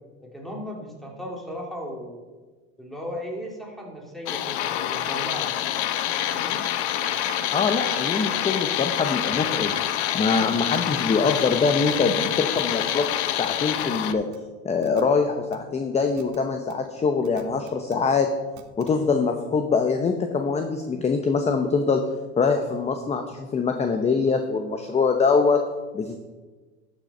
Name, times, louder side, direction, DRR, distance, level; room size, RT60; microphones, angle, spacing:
voice 1, 0.2-2.2 2.8-5.5 6.3-6.6, equal, ahead, -2 dB, 2.7 m, -36 dB
sound 1, 4.3-14.1, left 11 dB, 80° left, 0.7 m, -26 dB
sound 2, 6.5-10.0, right 5 dB, 40° right, 2.0 m, -44 dB
voice 2, 7.5-9.7 10.1-13.1 13.4-14.2 14.6-18.3 18.8-22.0 22.4-25.6 25.9-26.2, left 4 dB, 20° left, 5 dB, 0.8 m, -23 dB
sound 3, 10.7-10.8 11.4-12.0 12.3-12.4 12.6-13.2 13.4-14.0 14.3-14.4 14.8-15.0 15.5-15.6 16.2-16.4 16.7-16.8 17.2-17.9 18.6-18.9, right 12 dB, 65° right, 1.1 m, -45 dB
13.0 x 6.7 x 4.3 m, 1.3 s
supercardioid pair, 105°, 33 cm